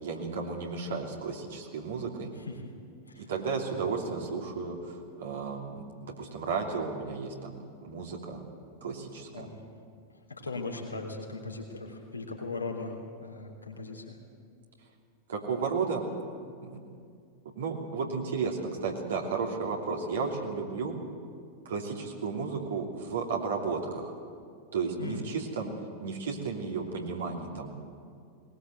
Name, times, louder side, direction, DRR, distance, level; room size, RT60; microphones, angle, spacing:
voice 1, 0.0-2.3 3.2-8.4 8.8-9.5 15.3-16.1 16.6-16.8 17.6-20.9 21.6-24.1 24.7-25.7 26.0-27.7, right 5 dB, 65° right, -1 dB, 2.9 m, -33 dB
voice 2, 2.3-2.7 3.1-3.8 9.3-9.6 10.1-12.9 13.2-14.2 25.0-25.3, left 3 dB, 80° left, 1 dB, 3.3 m, -39 dB
20.5 x 20.0 x 7.9 m, 2.3 s
figure-of-eight pair, 90°, 0 cm